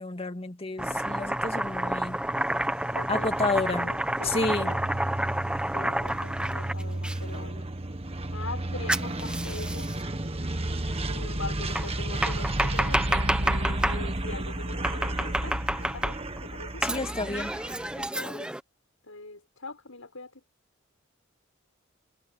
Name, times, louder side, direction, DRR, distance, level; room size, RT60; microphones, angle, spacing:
voice 1, 0.0-2.2 3.1-3.9 4.2-4.7 16.8-17.5, left 2 dB, 30° left, 2.2 m, -30 dB
Domestic sounds home sounds, 0.8-7.2 8.9-10.0 11.7-14.0 14.8-16.4 16.8-18.6, right 1 dB, 5° right, 1.4 m, -29 dB
sound 1, 2.4-18.1, right 1 dB, 30° right, 1.8 m, -33 dB
voice 2, 2.9-3.5 3.8-4.8 5.7-7.7 8.3-9.9 11.1-16.1 16.4-16.8 17.9-18.5 19.0-20.4, left 3 dB, 90° left, 6.5 m, -42 dB
head